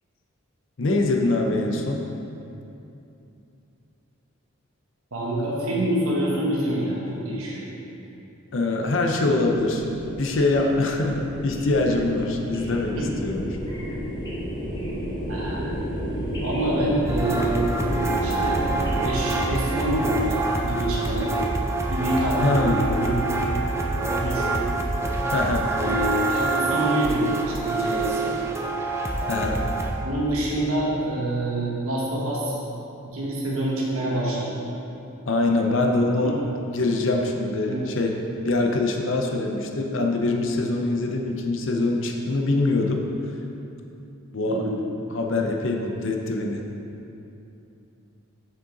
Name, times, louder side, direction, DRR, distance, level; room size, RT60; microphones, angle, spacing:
voice 1, 0.8-2.0 8.5-9.8 10.1-13.5 22.4-22.8 25.3-25.7 29.3-29.7 35.3-36.4 36.7-38.2 38.4-43.0 44.3-44.6 45.1-46.6, left 2 dB, 60° left, 2 dB, 0.6 m, -24 dB
voice 2, 5.1-7.6 12.9-13.1 15.3-15.7 16.4-17.7 18.2-18.6 19.0-21.3 21.9-23.2 24.1-24.7 25.8-28.3 30.0-32.6 33.0-34.6 36.1-36.3 37.6-37.9 44.5-44.8, right 1 dB, 90° right, -5 dB, 1.3 m, -26 dB
sound 1, 9.3-19.1, equal, 20° left, 1.1 m, -32 dB
sound 2, 17.1-29.9, right 2 dB, 15° right, 0.4 m, -26 dB
6.7 x 6.4 x 3.9 m, 2.8 s
head